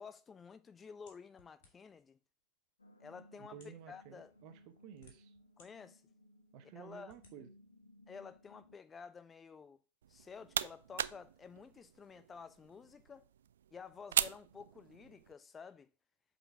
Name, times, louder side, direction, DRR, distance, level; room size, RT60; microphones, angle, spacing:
voice 1, 0.0-2.2 3.0-3.6 3.9-4.3 5.6-6.0 6.7-7.1 8.1-9.8 10.1-13.2 13.7-15.9, left 6 dB, 20° left, 0.7 m, -52 dB
sound 1, 1.1-2.0 2.8-2.9 3.5-3.8 4.6-5.7 6.2-6.3 7.0-7.4, left 4 dB, 50° left, 2.6 m, -64 dB
sound 2, 2.8-8.8, equal, 75° left, 1.2 m, -62 dB
voice 2, 3.4-5.3 6.5-7.5, right 9 dB, 40° right, 1.0 m, -53 dB
sound 3, 10.0-15.3, right 10 dB, 60° right, 0.3 m, -40 dB
7.9 x 4.1 x 4.5 m
figure-of-eight pair, 90°, 0 cm